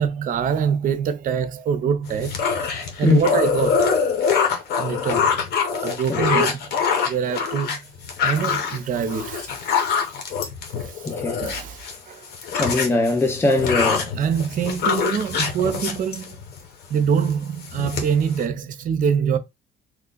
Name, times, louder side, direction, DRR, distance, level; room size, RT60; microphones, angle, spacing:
voice 1, 0.0-2.4 3.0-3.9 4.8-5.3 5.8-6.6 7.1-7.8 8.2-9.5 10.8-11.1 11.4-12.3 14.2-16.4 16.9-19.4, right 7 dB, 50° right, 0.7 m, -24 dB
sound 1, 2.1-12.0 12.2-16.7 17.1-17.3 17.6-18.4, left 6 dB, 75° left, 1.0 m, -24 dB
voice 2, 6.1-6.4 11.0-11.4 12.5-14.1, left 3 dB, 15° left, 0.6 m, -21 dB
3.1 x 2.3 x 3.8 m
cardioid pair, 110°, 17 cm